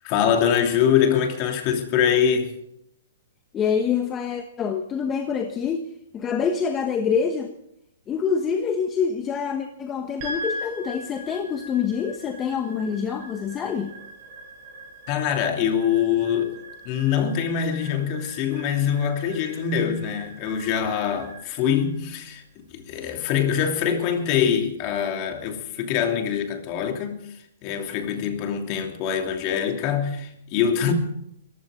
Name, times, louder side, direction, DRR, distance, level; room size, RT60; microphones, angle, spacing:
voice 1, 0.0-2.5 15.1-16.6 16.8-22.4 22.7-27.2 27.6-30.9, left 8 dB, 35° left, 2.9 m, -24 dB
voice 2, 3.5-5.8 6.1-7.5 8.1-13.9, left 6 dB, 20° left, 1.2 m, -26 dB
sound 1, 10.2-24.6, equal, 35° right, 6.4 m, -41 dB
22.5 x 15.0 x 3.8 m
hypercardioid pair, 145°, 0 cm